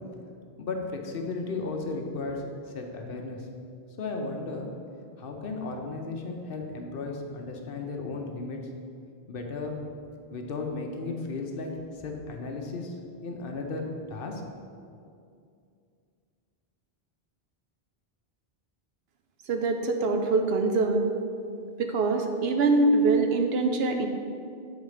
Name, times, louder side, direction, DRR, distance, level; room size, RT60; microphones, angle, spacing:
voice 1, 0.6-3.5 4.0-4.7 5.2-8.6 9.3-9.8 10.3-11.7 12.0-12.9 13.2-14.4 14.8-14.9, left 3 dB, 65° left, 2 dB, 0.9 m, -35 dB
voice 2, 19.5-21.1 21.8-24.1, right 3 dB, 75° right, 4 dB, 0.9 m, -24 dB
8.2 x 4.0 x 4.9 m, 2.4 s
omnidirectional pair, 1.0 m